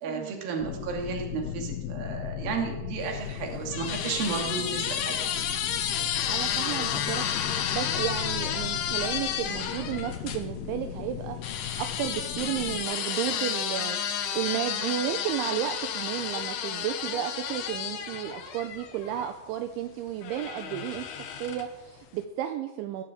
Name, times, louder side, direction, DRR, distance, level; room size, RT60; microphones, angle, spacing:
voice 1, 0.0-5.2, right 5 dB, 55° right, 2 dB, 4.0 m, -33 dB
sound 1, 0.6-12.8, left 9 dB, 85° left, 3.8 m, -37 dB
sound 2, 3.1-10.4 11.4-19.3 20.2-21.8, left 9 dB, 70° left, 3.2 m, -32 dB
voice 2, 6.3-14.0 14.3-23.0, right 11 dB, 80° right, 6 dB, 3.3 m, -33 dB
20.0 x 7.3 x 8.7 m, 1.0 s
omnidirectional pair, 5.4 m